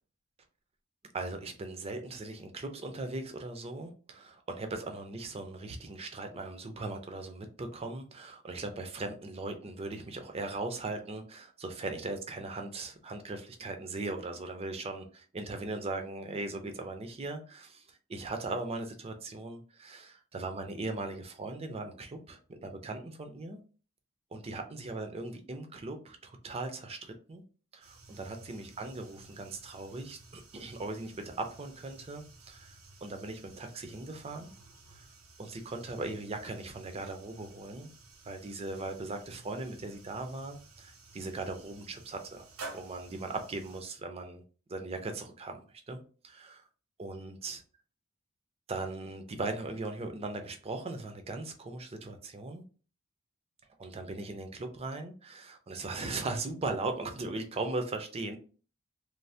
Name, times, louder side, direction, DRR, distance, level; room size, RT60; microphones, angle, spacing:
voice 1, 1.1-23.6 24.3-27.4 27.7-32.8 33.0-34.5 34.9-35.0 35.4-37.9 38.2-42.5 42.7-44.4 44.7-45.6 45.9-46.6 47.0-47.6 48.7-52.6 53.8-58.4, right 2 dB, 30° right, 6 dB, 0.5 m, -39 dB
sound 1, 27.8-43.8, right 3 dB, 85° right, 0.7 m, -53 dB
3.1 x 2.0 x 2.6 m, 0.37 s
head